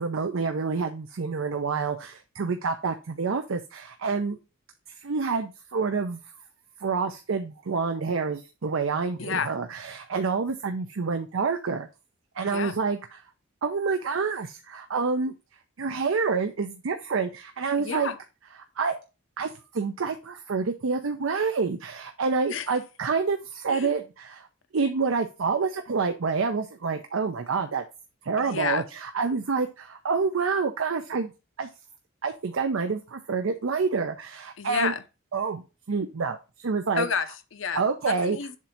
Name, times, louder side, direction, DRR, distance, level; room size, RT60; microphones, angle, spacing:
voice 1, 0.0-4.4 5.0-6.2 6.8-11.9 12.4-13.0 13.6-15.3 15.8-18.1 18.8-19.0 19.4-24.5 24.7-27.8 28.2-31.3 31.6-31.7 32.2-34.9 35.3-37.1 37.7-38.4, right 5 dB, 75° right, 0.6 m, -28 dB
voice 2, 9.2-9.5 12.4-12.8 17.8-18.2 22.5-22.7 23.7-23.9 28.4-28.9 34.6-35.0 37.0-38.6, left 6 dB, 65° left, 0.7 m, -31 dB
7.3 x 2.6 x 5.8 m
head